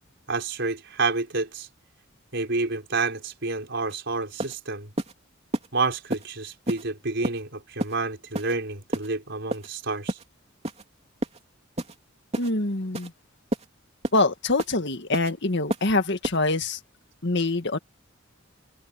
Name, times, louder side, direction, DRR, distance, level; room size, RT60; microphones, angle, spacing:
voice 1, 0.3-1.7 2.3-4.9 5.7-10.2, right 3 dB, 60° right, 5.0 m, -29 dB
sound 1, 3.9-4.0 4.4-4.6 5.0-5.1 5.5-5.7 6.1-6.3 6.7-6.8 7.2-7.4 7.8-8.0 8.3-8.5 8.9-9.1 9.5-9.7 10.1-10.2 10.6-10.8 11.2-11.4 11.8-12.0 12.3-12.5 12.9-13.1 13.5-13.7 14.0-14.2 14.6-14.8 15.1-15.3 15.7-15.9 16.2-16.4, right 1 dB, 30° right, 3.1 m, -29 dB
voice 2, 12.4-13.1 14.1-16.8 17.2-17.8, left 2 dB, 60° left, 1.9 m, -25 dB
head